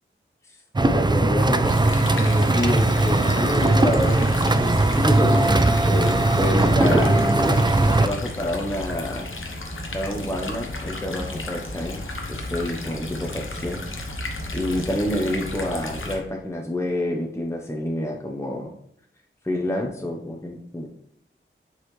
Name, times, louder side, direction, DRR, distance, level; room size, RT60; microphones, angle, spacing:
voice 1, 0.8-1.7 2.2-5.4 5.9-9.3 9.9-12.0 12.3-13.8 14.5-18.7 19.4-20.9, left 1 dB, 15° left, 0 dB, 0.9 m, -28 dB
sound 1, 0.8-8.1, right 2 dB, 20° right, 0.4 m, -19 dB
sound 2, 1.6-16.2, left 2 dB, 70° left, 1.0 m, -33 dB
7.5 x 4.1 x 3.2 m, 0.68 s
wide cardioid pair, 50°, 21 cm